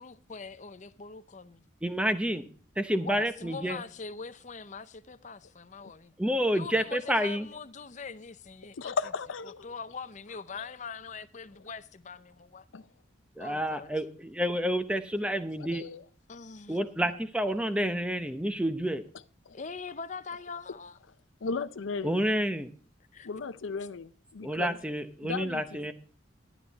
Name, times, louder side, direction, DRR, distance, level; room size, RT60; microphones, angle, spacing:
voice 1, 0.0-1.6 3.0-6.1 6.5-8.9 9.6-12.7 13.4-13.9 16.3-16.9 19.5-21.0 23.1-23.3, left 5 dB, 40° left, 0.6 m, -42 dB
voice 2, 1.8-2.4 2.8-3.8 6.2-7.5 13.4-15.8 16.7-19.0 22.0-22.7 24.4-25.9, equal, 5° right, 0.7 m, -29 dB
voice 3, 8.8-9.7 12.7-12.9 15.6-16.0 19.5-19.6 21.4-22.2 23.2-24.8 25.2-25.6, left 5 dB, 80° left, 0.6 m, -35 dB
12.0 x 10.0 x 4.0 m
head